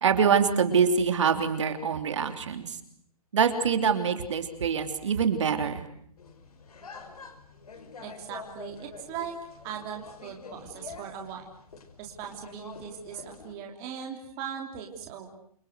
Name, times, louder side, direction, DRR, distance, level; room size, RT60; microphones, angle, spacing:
voice 1, 0.0-2.8 3.3-5.9, right 6 dB, 50° right, 7 dB, 3.1 m, -25 dB
sound 1, 6.2-13.5, left 4 dB, 80° left, 5.3 m, -47 dB
voice 2, 8.0-9.3 9.6-11.5 12.0-15.3, right 8 dB, 15° right, 1 dB, 3.1 m, -39 dB
29.0 x 25.0 x 8.0 m, 0.66 s
hypercardioid pair, 180°, 19 cm